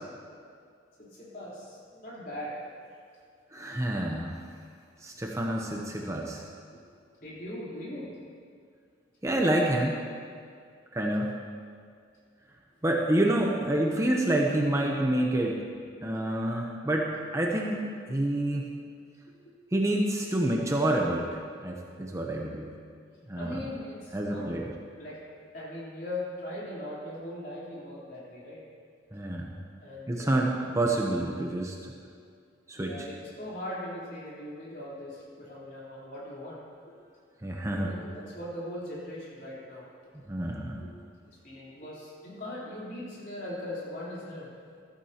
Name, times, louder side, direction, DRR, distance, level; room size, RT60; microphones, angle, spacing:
voice 1, 1.0-2.6 7.2-8.1 23.4-24.5 25.0-25.2 25.5-28.6 29.8-30.6 32.7-36.6 36.9-37.1 37.7-39.9 40.4-40.9 41.3-44.5, left 1 dB, 50° left, -7 dB, 3.7 m, -40 dB
voice 2, 3.5-4.3 5.0-6.4 9.2-10.0 10.9-11.3 12.8-15.6 16.0-17.8 18.1-18.7 19.7-21.3 21.6-22.7 23.3-23.7 24.1-24.6 29.1-29.6 30.1-30.5 30.7-31.7 32.7-33.0 37.4-37.9 40.3-40.8, right 1 dB, 15° right, 0 dB, 0.8 m, -28 dB
14.0 x 14.0 x 2.9 m, 2.2 s
head